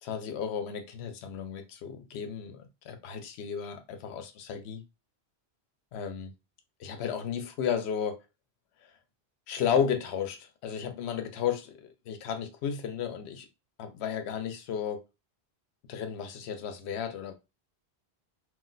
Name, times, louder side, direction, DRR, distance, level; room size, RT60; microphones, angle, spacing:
voice 1, 0.0-4.8 5.9-6.3 6.8-8.2 8.8-8.9 9.5-13.5 13.8-15.0 15.9-17.3, left 7 dB, 80° left, 0.9 m, -33 dB
2.5 x 2.1 x 3.8 m
omnidirectional pair, 1.1 m